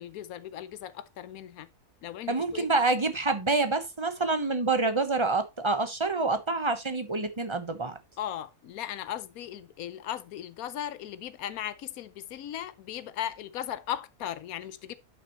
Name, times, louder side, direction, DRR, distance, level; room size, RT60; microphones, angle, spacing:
voice 1, 0.0-1.7 2.0-2.7 8.2-14.9, left 11 dB, 90° left, 1.1 m, -37 dB
voice 2, 2.3-8.0, right 3 dB, 25° right, 0.9 m, -27 dB
11.0 x 6.0 x 3.0 m
omnidirectional pair, 1.5 m